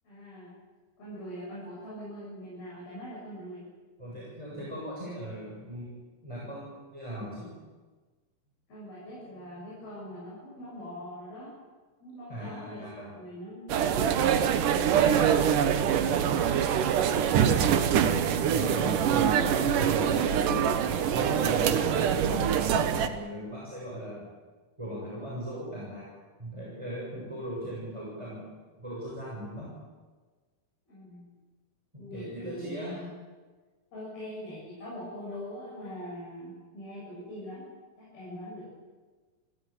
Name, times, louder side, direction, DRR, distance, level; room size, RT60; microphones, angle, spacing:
voice 1, 0.0-0.5 1.0-3.6 8.7-11.5 12.0-13.7 15.0-17.3 30.9-31.3 32.0-33.1 33.9-37.6 38.0-38.7, equal, 85° left, -7 dB, 9.8 m, -42 dB
voice 2, 4.0-6.0 6.2-7.5 12.3-13.1 18.1-20.8 21.1-22.6 23.0-24.2 24.8-28.5 28.8-29.7 31.9-33.0, equal, 10° right, -5 dB, 6.9 m, -38 dB
sound 1, 13.7-23.1, right 8 dB, 70° right, 2.7 m, -24 dB
29.5 x 16.0 x 8.8 m, 1.4 s
omnidirectional pair, 4.2 m